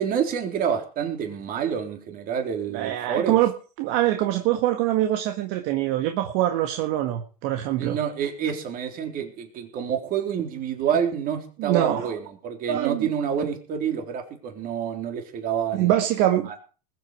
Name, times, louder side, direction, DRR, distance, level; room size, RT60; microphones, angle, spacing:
voice 1, 0.0-3.4 7.8-15.9 16.5-16.6, right 8 dB, 45° right, 4 dB, 3.8 m, -28 dB
voice 2, 2.7-3.5 3.8-8.0 11.6-12.2 12.7-13.1 15.7-16.5, right 13 dB, 60° right, 5 dB, 1.8 m, -24 dB
21.0 x 8.2 x 4.9 m, 0.38 s
hypercardioid pair, 110°, 21 cm